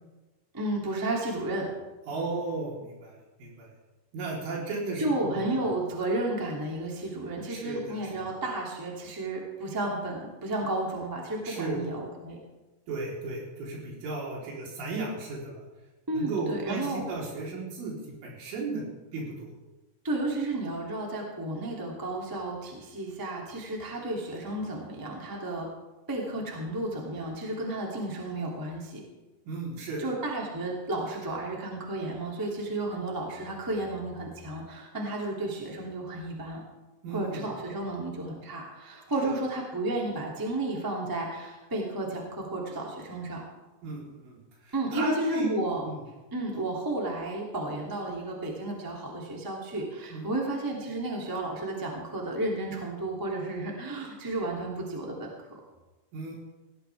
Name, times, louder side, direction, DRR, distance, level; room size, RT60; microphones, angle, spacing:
voice 1, 0.5-1.7 5.0-12.4 16.1-17.0 20.0-25.7 26.1-29.0 30.0-36.6 37.1-43.4 44.7-45.8 46.3-55.6, right 2 dB, 10° right, -2 dB, 1.3 m, -32 dB
voice 2, 2.1-3.7 4.1-5.6 7.5-8.2 11.4-11.8 12.9-15.6 16.1-18.0 18.2-18.8 19.1-19.5 29.5-30.0 37.0-37.5 39.2-39.3 43.8-44.4 44.7-45.5 45.8-46.0 50.1-50.3 56.1-56.4, right 3 dB, 75° right, -3 dB, 6.2 m, -35 dB
18.5 x 15.5 x 3.5 m, 1.1 s
omnidirectional pair, 5.6 m